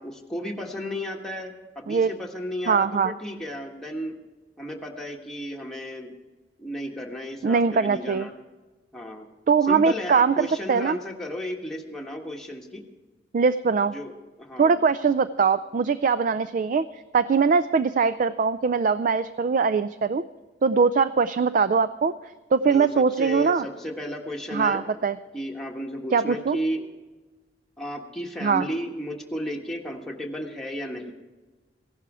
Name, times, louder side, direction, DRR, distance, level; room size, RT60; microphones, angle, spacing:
voice 1, 0.0-4.1 4.6-6.1 6.6-8.3 8.9-9.3 9.7-12.8 13.9-14.1 14.4-14.8 22.7-24.8 25.3-26.9 27.8-31.1, equal, 5° left, 0 dB, 1.4 m, -33 dB
voice 2, 2.7-3.1 7.4-8.3 9.5-11.0 13.3-13.9 14.6-20.2 20.6-22.1 22.5-23.6 24.5-25.2 26.1-26.6 28.4-28.7, right 5 dB, 45° right, 15 dB, 0.3 m, -22 dB
16.0 x 11.5 x 4.9 m, 1.3 s
head